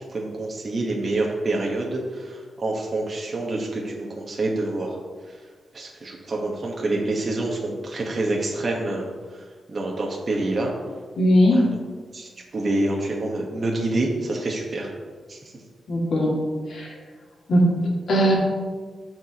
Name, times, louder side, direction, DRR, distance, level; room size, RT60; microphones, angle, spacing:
voice 1, 0.0-5.0 5.3-5.4 5.7-9.0 9.3-10.7 12.1-14.9 15.3-15.4, right 2 dB, 40° right, -2 dB, 1.1 m, -27 dB
voice 2, 11.2-11.7 15.9-16.4 16.7-17.0 17.5-17.7 18.1-18.4, equal, 65° left, -3 dB, 2.1 m, -19 dB
13.5 x 4.6 x 2.9 m, 1.5 s
wide cardioid pair, 120°, 0 cm